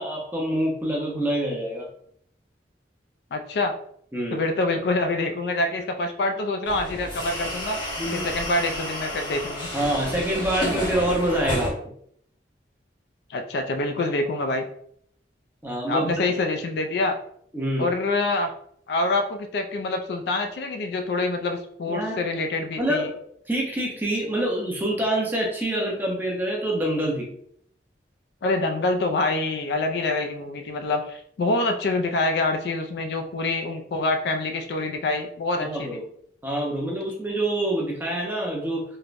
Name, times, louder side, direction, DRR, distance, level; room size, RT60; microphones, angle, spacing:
voice 1, 0.0-1.9 4.1-4.4 8.0-8.3 9.7-11.7 15.6-16.2 17.5-17.9 21.9-22.2 22.8-23.2 23.5-27.3 35.6-36.0 36.4-38.8, right 1 dB, 10° right, -2 dB, 0.5 m, -26 dB
voice 2, 3.3-3.7 4.3-7.8 8.1-9.7 13.3-14.6 15.9-17.2 17.8-18.5 18.9-23.1 28.4-36.0, left 2 dB, 65° left, 5 dB, 0.3 m, -26 dB
sound 1, 6.6-11.7, left 1 dB, 25° left, 0.8 m, -31 dB
3.1 x 2.1 x 2.4 m, 0.67 s
head